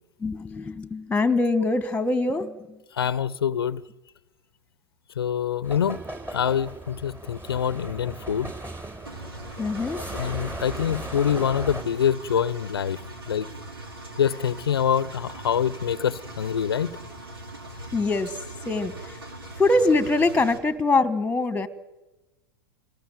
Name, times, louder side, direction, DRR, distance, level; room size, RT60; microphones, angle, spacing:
voice 1, 0.2-2.6 9.6-10.0 17.9-18.3 18.7-18.9 19.6-21.7, left 2 dB, 10° left, 1.8 m, -23 dB
voice 2, 2.9-3.8 5.2-6.0 6.3-8.5 10.1-13.0 13.3-13.5 14.2-16.9, left 8 dB, 85° left, 0.7 m, -25 dB
sound 1, 5.6-11.8, right 1 dB, 20° right, 4.6 m, -37 dB
Engine, 9.0-20.6, right 1 dB, 90° right, 3.6 m, -41 dB
27.5 x 18.5 x 9.3 m
hypercardioid pair, 105°, 12 cm